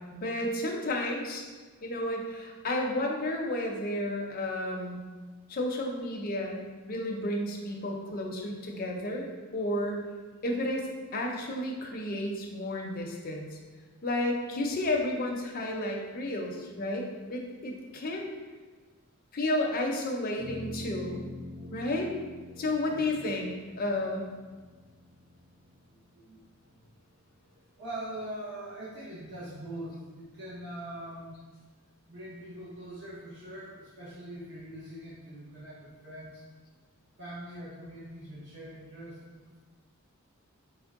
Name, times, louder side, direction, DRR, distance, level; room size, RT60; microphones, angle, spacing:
voice 1, 0.1-1.5 1.8-5.0 5.5-9.3 9.5-10.0 10.4-10.9 11.1-13.5 14.0-18.3 19.3-21.2 21.7-22.1 22.6-24.3, left 1 dB, 45° left, 1 dB, 0.5 m, -32 dB
sound 1, 20.4-26.9, equal, 70° right, 1.4 m, -44 dB
voice 2, 21.0-21.9 22.5-22.6 22.9-23.2 26.1-26.4 26.7-27.0 27.5-31.4 32.1-36.4 37.2-39.6, right 1 dB, 55° right, -9 dB, 0.8 m, -43 dB
4.4 x 2.1 x 3.5 m, 1.4 s
head